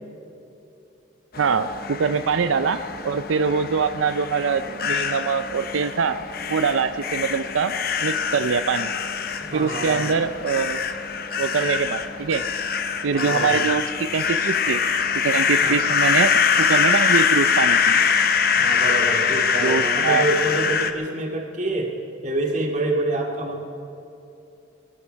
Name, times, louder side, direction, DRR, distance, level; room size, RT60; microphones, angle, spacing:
sound 1, 1.3-20.9, left 6 dB, 50° left, 0.8 m, -23 dB
voice 1, 1.4-6.2 6.5-7.7 8.0-8.9 9.5-10.8 11.4-12.4 13.0-13.8 14.1-14.8 15.2-16.3 16.7-18.0 19.6-20.2, right 5 dB, 90° right, 11 dB, 0.5 m, -23 dB
voice 2, 9.5-10.1 13.1-13.7 15.6-15.8 18.5-21.9 22.2-23.6, right 2 dB, 40° right, 1 dB, 2.3 m, -26 dB
24.5 x 11.5 x 4.6 m, 2.8 s
head